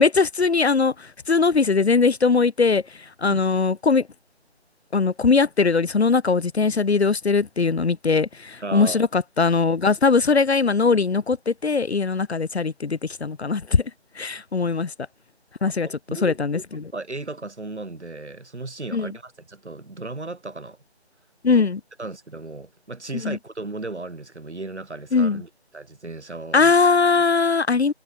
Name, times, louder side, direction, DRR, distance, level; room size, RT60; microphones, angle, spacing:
voice 1, 0.0-4.1 4.9-14.9 15.6-15.9 16.2-16.9 18.9-19.1 21.4-21.8 23.1-23.4 25.1-25.4 26.5-27.9, left 4 dB, 75° left, 0.8 m, -20 dB
voice 2, 8.6-9.1 15.8-16.6 16.9-20.8 21.5-21.7 22.0-26.7, right 2 dB, 90° right, 1.6 m, -35 dB
figure-of-eight pair, 165°, 33 cm